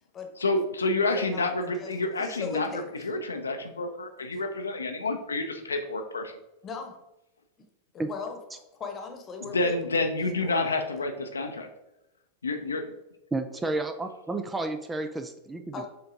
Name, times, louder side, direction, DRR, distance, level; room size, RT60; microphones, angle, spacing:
voice 1, 0.4-6.4 9.4-11.7 12.4-12.9, left 2 dB, 75° left, 5 dB, 0.6 m, -29 dB
voice 2, 1.0-2.9 4.3-4.4 6.6-7.0 7.9-9.8 10.2-10.6 11.0-11.1 15.7-15.9, left 5 dB, 25° left, 4 dB, 1.1 m, -38 dB
voice 3, 13.3-15.9, right 2 dB, 10° right, 7 dB, 0.4 m, -31 dB
6.7 x 3.8 x 3.7 m, 0.92 s
figure-of-eight pair, 90°, 0 cm